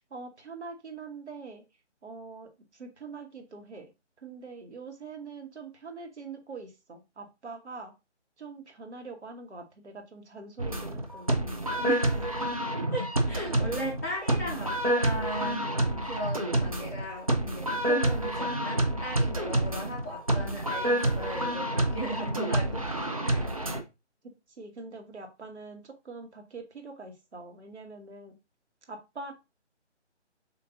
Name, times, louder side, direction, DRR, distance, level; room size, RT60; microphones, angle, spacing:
voice 1, 0.0-1.6 2.0-3.9 4.2-7.9 8.4-11.4 24.5-28.3 28.9-29.3, right 4 dB, 65° right, 4 dB, 1.3 m, -44 dB
sound 1, 10.6-23.8, right 1 dB, 30° right, 0.5 m, -28 dB
voice 2, 11.8-12.3 12.9-22.9 23.2-23.5, right 1 dB, 15° left, -5 dB, 0.8 m, -37 dB
6.9 x 2.6 x 2.6 m, 0.26 s
figure-of-eight pair, 155°, 36 cm